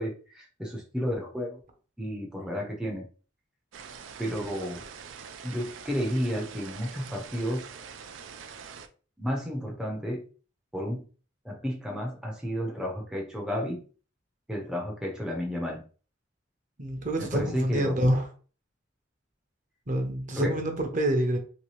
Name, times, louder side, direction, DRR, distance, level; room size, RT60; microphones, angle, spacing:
voice 1, 0.0-1.6 2.0-3.1 4.2-4.8 5.4-7.7 9.2-10.3 10.7-11.1 11.4-13.8 14.5-15.9 17.2-18.0 20.3-20.6, equal, 5° right, -2 dB, 0.5 m, -32 dB
sound 1, 3.7-8.9, right 6 dB, 85° right, 0.4 m, -44 dB
voice 2, 16.8-18.3 19.9-21.4, right 1 dB, 40° right, 4 dB, 0.7 m, -27 dB
3.1 x 2.8 x 3.1 m, 0.38 s
head